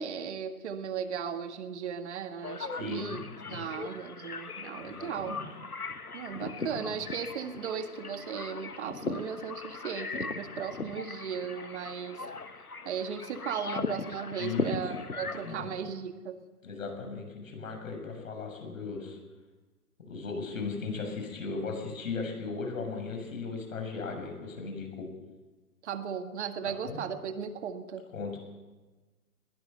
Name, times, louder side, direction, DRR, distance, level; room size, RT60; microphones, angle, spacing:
voice 1, 0.0-3.2 3.5-5.4 6.1-12.3 12.8-16.4 25.8-28.0, right 7 dB, 50° right, 8 dB, 1.9 m, -36 dB
sound 1, 2.4-15.5, left 4 dB, 85° left, 1.4 m, -38 dB
voice 2, 2.7-3.7 4.8-5.5 6.6-7.0 14.4-15.1 15.4-15.7 16.6-19.2 20.1-25.1 26.6-27.0 28.1-28.4, left 4 dB, 65° left, 4 dB, 7.0 m, -37 dB
20.5 x 17.0 x 7.9 m, 1.2 s
figure-of-eight pair, 115°, 43 cm